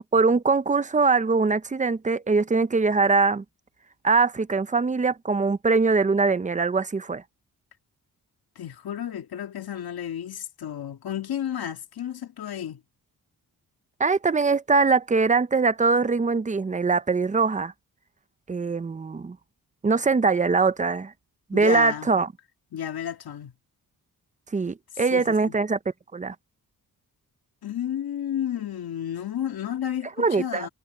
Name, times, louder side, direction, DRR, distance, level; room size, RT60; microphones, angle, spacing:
voice 1, 0.0-3.4 4.0-7.2 14.0-17.7 18.5-19.4 19.8-21.1 21.5-22.3 24.5-25.8 26.1-26.4 30.2-30.7, right 4 dB, 20° right, 0.5 m, -22 dB
voice 2, 8.6-12.8 21.5-22.1 22.7-23.5 25.0-25.5 27.6-30.7, left 10 dB, 75° left, 2.2 m, -32 dB
wide cardioid pair, 170°, 37 cm